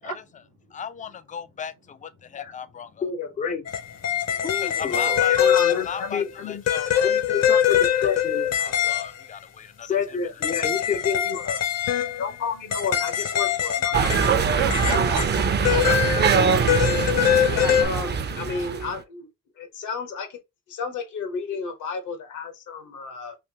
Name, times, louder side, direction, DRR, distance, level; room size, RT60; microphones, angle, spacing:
voice 1, 0.7-3.6 4.4-11.6, left 7 dB, 25° left, 0.4 m, -32 dB
voice 2, 3.0-3.6 5.3-6.6 7.0-8.7 9.9-11.6 12.2-14.4 15.1-15.3 15.8-16.8 17.5-19.3 19.6-20.4 20.7-23.4, left 5 dB, 75° left, 1.1 m, -32 dB
sound 1, 3.7-6.1 6.7-9.2 10.4-14.4 14.7-17.9, left 10 dB, 55° left, 0.8 m, -23 dB
voice 3, 4.4-5.4 14.2-15.9, right 12 dB, 80° right, 0.6 m, -31 dB
sound 2, 13.9-19.0, right 5 dB, 35° right, 0.5 m, -23 dB
3.4 x 2.7 x 2.8 m
cardioid pair, 90°, 30 cm